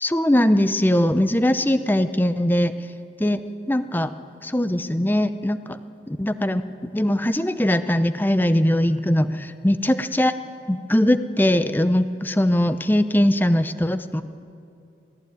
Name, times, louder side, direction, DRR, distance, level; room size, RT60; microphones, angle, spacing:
voice 1, 0.0-2.7 3.2-3.4 3.7-4.1 4.4-5.8 6.1-10.3 10.7-14.2, left 1 dB, 10° left, 11 dB, 0.6 m, -21 dB
21.0 x 15.0 x 9.3 m, 2.5 s
head